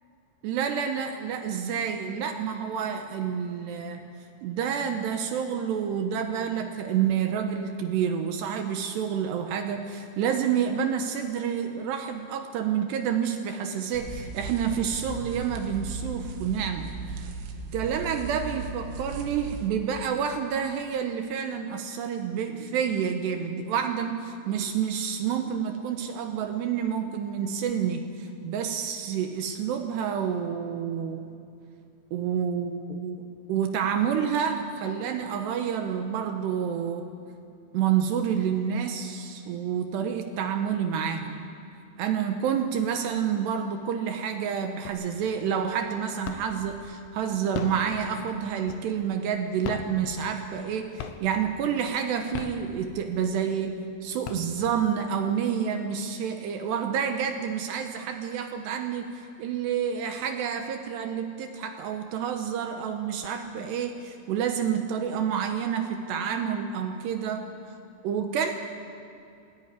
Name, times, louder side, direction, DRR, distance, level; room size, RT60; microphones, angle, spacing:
voice 1, 0.4-4.0 4.4-17.3 17.7-31.3 32.1-37.1 37.7-41.4 42.0-67.4 68.0-68.5, right 8 dB, 75° right, 6 dB, 2.7 m, -29 dB
sound 1, 13.9-19.7, right 3 dB, 90° right, 4.1 m, -37 dB
sound 2, 44.9-45.4 45.7-46.7 47.4-49.1 49.5-50.7 51.0-51.5 52.1-53.2 53.7-53.8 54.1-55.0, left 8 dB, 75° left, 3.2 m, -37 dB
18.5 x 18.0 x 9.7 m, 2.5 s
omnidirectional pair, 5.7 m